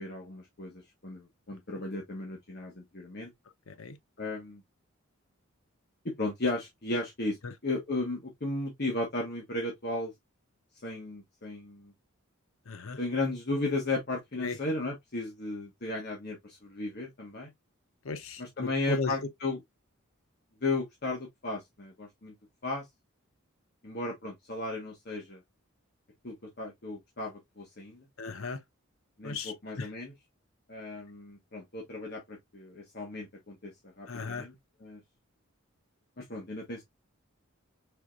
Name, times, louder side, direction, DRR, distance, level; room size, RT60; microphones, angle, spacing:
voice 1, 0.0-3.3 4.2-4.6 6.0-7.4 7.6-10.1 10.8-11.9 13.0-17.5 18.4-19.6 20.6-22.3 22.6-22.8 23.8-25.4 26.2-28.0 29.2-30.1 30.7-33.7 34.0-34.5 34.8-35.0 36.2-36.8, left 2 dB, 50° left, 1.3 m, -35 dB
voice 2, 3.7-4.0 7.4-7.5 12.7-13.0 14.4-14.6 18.0-19.1 28.2-28.6 29.2-29.9 34.1-34.5, left 4 dB, 80° left, 0.8 m, -36 dB
5.0 x 3.7 x 2.4 m
head